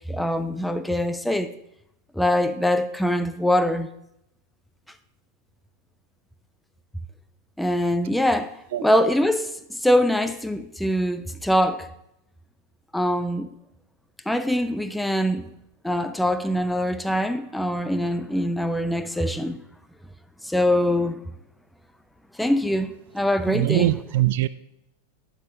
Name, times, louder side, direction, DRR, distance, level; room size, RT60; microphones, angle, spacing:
voice 1, 0.1-1.5 2.1-3.9 7.6-11.9 12.9-13.5 14.3-15.5 15.8-19.6 20.4-21.2 22.4-24.0, left 1 dB, 5° left, 0.6 m, -23 dB
voice 2, 23.5-24.5, right 15 dB, 55° right, 0.3 m, -22 dB
12.0 x 8.9 x 3.4 m
figure-of-eight pair, 90°, 0 cm